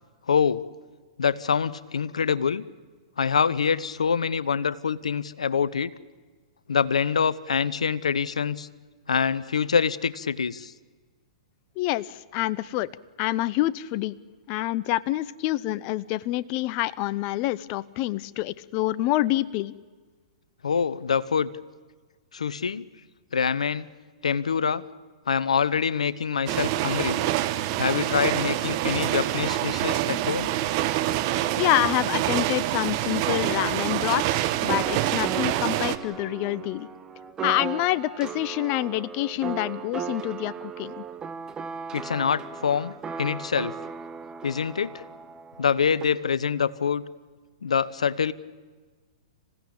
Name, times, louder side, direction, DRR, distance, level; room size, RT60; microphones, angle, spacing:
voice 1, 0.3-0.6 1.2-2.6 3.2-5.9 6.7-8.7 9.1-10.7 20.6-21.5 22.3-22.8 23.3-23.9 24.2-24.8 25.3-27.2 27.8-30.5 41.9-43.7 44.4-44.9 45.6-47.0 47.6-48.3, left 6 dB, 85° left, 17 dB, 0.9 m, -25 dB
voice 2, 11.8-12.9 13.2-14.1 14.5-19.7 31.6-36.9 37.4-41.0, left 16 dB, 40° left, 16 dB, 0.8 m, -27 dB
sound 1, 26.5-36.0, right 14 dB, 45° right, 1.3 m, -26 dB
sound 2, 34.7-46.0, right 6 dB, 20° right, 1.2 m, -37 dB
27.0 x 16.0 x 8.8 m, 1.4 s
hypercardioid pair, 125°, 3 cm